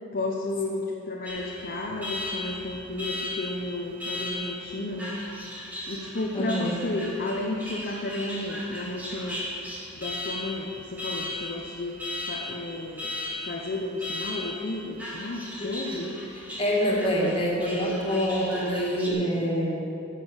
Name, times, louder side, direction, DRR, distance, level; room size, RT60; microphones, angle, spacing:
voice 1, 0.1-5.2 5.9-9.4 10.0-12.0 12.3-13.1 13.5-16.1, left 2 dB, 45° left, -1 dB, 0.9 m, -32 dB
Alarm, 1.3-19.1, left 2 dB, 5° right, 2.0 m, -37 dB
voice 2, 6.3-6.7 15.6-16.1 16.6-19.8, equal, 25° left, -4 dB, 2.3 m, -26 dB
12.0 x 6.9 x 7.1 m, 2.8 s
head